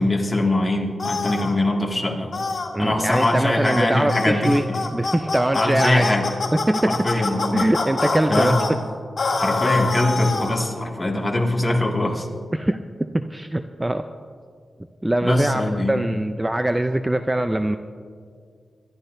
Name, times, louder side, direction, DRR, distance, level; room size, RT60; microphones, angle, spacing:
voice 1, 0.0-2.3 2.8-4.6 5.5-6.2 6.9-7.7 8.3-8.6 9.4-12.3 15.2-16.0, left 1 dB, 20° left, -1 dB, 2.1 m, -22 dB
sound 1, 1.0-1.5 2.3-2.7 3.1-3.3 3.6-3.8 4.1-8.7 9.2-10.6, left 3 dB, 60° left, 2.0 m, -25 dB
voice 2, 2.7-4.7 4.9-6.1 6.5-7.1 7.5-8.8 12.5-14.1 15.0-17.8, right 1 dB, 15° right, 8 dB, 0.4 m, -22 dB
24.5 x 12.0 x 2.7 m, 2.1 s
wide cardioid pair, 90°, 0 cm